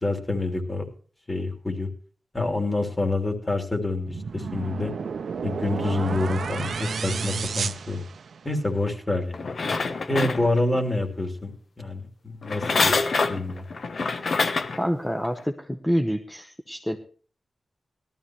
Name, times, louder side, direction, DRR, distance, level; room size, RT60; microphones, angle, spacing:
voice 1, 0.0-0.9 1.3-1.9 2.3-4.9 5.4-8.0 8.4-9.5 10.1-13.0 13.3-13.6, left 2 dB, 30° left, 5 dB, 3.4 m, -27 dB
sound 1, 4.1-8.7, right 5 dB, 85° right, 0.6 m, -31 dB
sound 2, 9.3-10.9 12.4-14.8 15.4-15.5, left 4 dB, 70° left, 1.1 m, -26 dB
voice 2, 14.7-17.0, equal, 10° left, 4 dB, 1.2 m, -27 dB
18.0 x 13.0 x 3.1 m, 0.42 s
wide cardioid pair, 80°, 0 cm